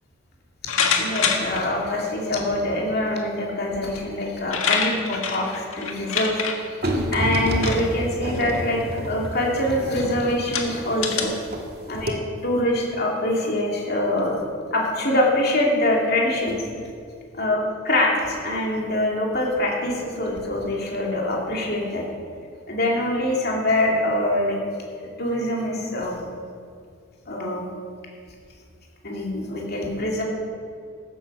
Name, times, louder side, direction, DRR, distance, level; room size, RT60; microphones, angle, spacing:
sound 1, 0.7-1.6 2.4-2.5 3.9-4.0 4.3-6.5 7.5-7.9 8.3-8.6 9.3-9.4 10.0-10.1 10.5-11.2, left 6 dB, 85° left, 1.6 m, -25 dB
voice 1, 1.0-6.4 6.8-8.8 9.1-11.3 11.9-12.2 12.4-14.4 14.7-16.6 17.3-22.0 22.7-24.6 25.0-26.1 27.3-27.6 29.0-30.2, left 1 dB, 50° left, -2 dB, 2.7 m, -24 dB
sound 2, 6.8-11.7 11.9-12.1, equal, 50° right, 1.6 m, -28 dB
15.0 x 8.4 x 6.2 m, 2.3 s
head